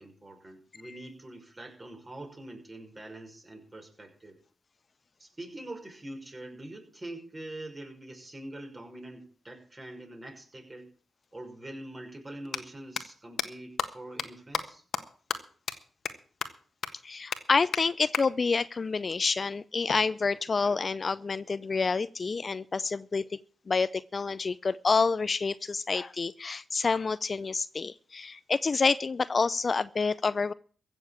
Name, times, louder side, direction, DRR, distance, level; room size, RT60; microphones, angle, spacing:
voice 1, 0.0-4.4 5.2-10.9 11.3-14.8, right 1 dB, 30° right, 2 dB, 6.0 m, -44 dB
sound 1, 11.2-11.3 12.4-12.6 13.0-13.1 13.4-13.5 13.8-13.9 14.2-14.3 14.5-14.6 14.9-15.0 15.3-15.4 15.7-15.8 16.1-16.2 16.4-16.5 16.8-16.9 17.3-17.4 17.7-17.8 18.1-18.2 19.9-20.9, left 7 dB, 75° left, 1.4 m, -32 dB
voice 2, 17.0-23.4 23.7-30.5, left 4 dB, 45° left, 17 dB, 0.5 m, -28 dB
15.5 x 7.2 x 8.7 m, 0.43 s
supercardioid pair, 45°, 0 cm